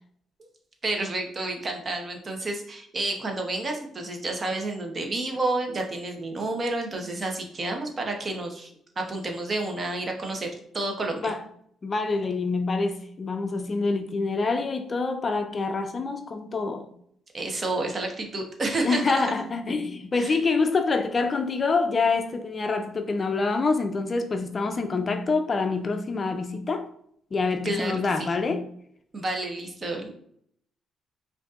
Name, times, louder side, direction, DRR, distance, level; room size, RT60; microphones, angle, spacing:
voice 1, 0.8-8.7 9.0-10.5 10.7-11.3 17.3-19.2 20.1-20.3 27.6-27.9 28.2-28.3 29.1-30.1, right 2 dB, 35° right, 0.9 m, -30 dB
voice 2, 11.8-16.9 18.8-26.9 27.3-28.7, left 4 dB, 35° left, 0.4 m, -26 dB
5.0 x 2.6 x 2.4 m
cardioid pair, 90°, 0 cm